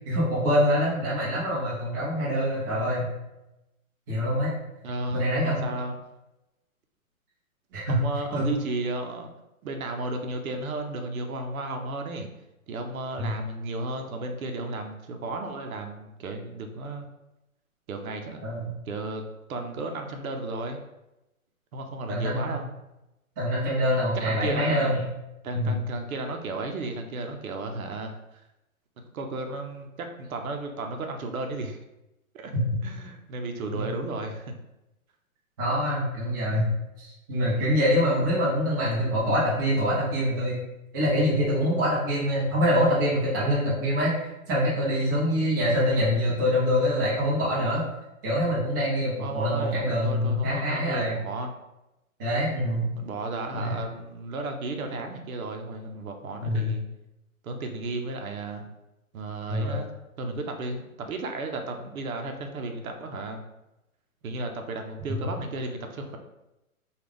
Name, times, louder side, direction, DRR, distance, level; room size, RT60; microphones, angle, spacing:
voice 1, 0.1-3.1 4.1-4.5 5.1-5.7 7.7-8.0 8.3-8.5 13.2-13.4 18.4-18.7 22.1-22.6 23.4-25.0 25.5-25.8 33.7-33.8 35.6-36.7 37.0-40.6 40.9-44.1 44.5-47.8 48.2-51.2 52.2-52.9 53.5-53.7 56.4-56.7 59.5-59.8, equal, 15° right, -7 dB, 0.5 m, -25 dB
voice 2, 4.8-6.0 7.9-9.3 9.6-12.3 12.7-17.1 17.9-18.4 18.9-20.8 21.7-22.6 24.2-24.9 25.4-28.4 29.1-31.8 32.3-32.5 32.8-34.5 49.2-51.5 52.9-56.8 57.4-58.6 59.1-59.9 60.2-63.4 64.2-66.2, right 2 dB, 75° right, 4 dB, 0.7 m, -33 dB
3.5 x 2.3 x 3.3 m, 0.94 s
hypercardioid pair, 150°, 43 cm